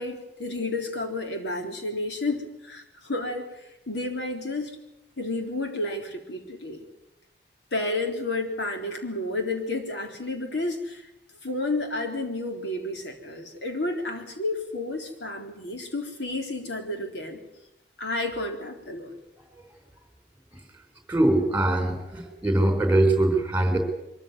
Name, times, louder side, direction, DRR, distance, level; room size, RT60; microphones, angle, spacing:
voice 1, 0.0-4.7 5.2-6.8 7.7-11.1 11.4-17.4 18.0-19.2, left 2 dB, 85° left, 3 dB, 3.9 m, -31 dB
voice 2, 19.4-19.7 20.5-20.6 21.1-23.8, right 1 dB, 10° right, 5 dB, 4.0 m, -23 dB
23.5 x 14.5 x 9.6 m, 0.90 s
head